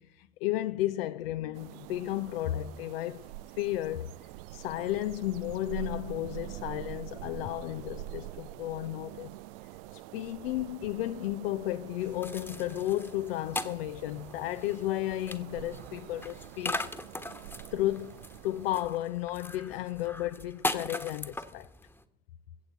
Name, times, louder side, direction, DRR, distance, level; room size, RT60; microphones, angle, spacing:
voice 1, 0.0-3.3 3.6-4.1 4.5-9.3 9.9-16.9 17.7-21.7, left 14 dB, 70° left, 0.6 m, -33 dB
sound 1, 1.5-19.0, right 16 dB, 65° right, 0.5 m, -45 dB
sound 2, 12.0-22.0, left 1 dB, 5° left, 1.3 m, -40 dB
23.5 x 8.2 x 5.6 m
figure-of-eight pair, 60°, 31 cm